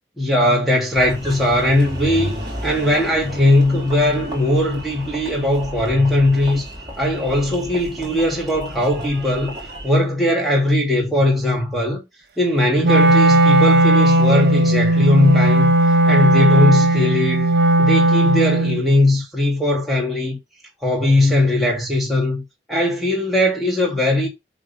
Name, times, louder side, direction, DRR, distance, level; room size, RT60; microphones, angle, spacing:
voice 1, 0.2-6.7 7.0-9.5 9.8-12.0 12.4-15.7 16.1-17.5 17.8-20.4 20.8-22.4 22.7-24.3, left 1 dB, ahead, 2.6 m, -19 dB
Engine, 0.9-9.9, equal, 20° right, 4.1 m, -33 dB
Wind instrument woodwind instrument, 12.8-18.8, right 2 dB, 60° right, 1.8 m, -15 dB
8.2 x 4.0 x 5.6 m
head